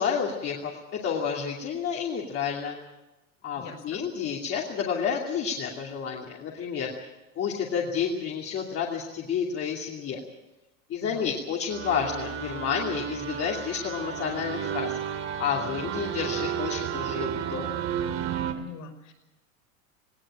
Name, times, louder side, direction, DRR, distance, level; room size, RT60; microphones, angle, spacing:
voice 1, 0.0-2.7 3.4-6.9 7.4-10.2 10.9-15.0 15.4-17.7, left 7 dB, 35° left, -2 dB, 2.8 m, -30 dB
voice 2, 3.5-4.0 11.0-11.3 18.5-19.1, left 6 dB, 55° left, 7 dB, 5.5 m, -42 dB
sound 1, 11.7-18.5, right 9 dB, 40° right, 2.5 m, -32 dB
19.5 x 17.5 x 8.8 m, 1.0 s
supercardioid pair, 125°, 39 cm